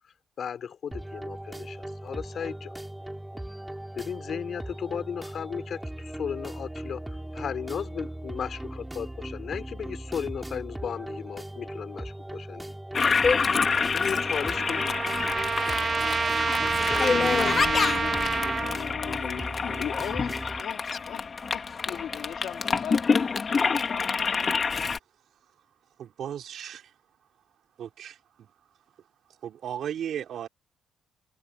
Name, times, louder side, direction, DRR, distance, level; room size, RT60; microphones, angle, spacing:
voice 1, 0.4-2.7 3.9-12.7 13.9-15.0, left 7 dB, 55° left, 3.6 m, -35 dB
sound 1, 0.9-20.6, right 1 dB, 5° right, 4.0 m, -38 dB
Toilet flush, 12.9-25.0, left 5 dB, 40° left, 2.0 m, -27 dB
Trumpet, 13.7-18.8, right 6 dB, 45° right, 1.0 m, -28 dB
voice 2, 17.0-21.2 21.5-24.5, left 10 dB, 75° left, 2.4 m, -38 dB
voice 3, 26.0-26.8 27.8-28.5 29.4-30.5, right 9 dB, 65° right, 3.7 m, -35 dB
cardioid pair, 90°, 0 cm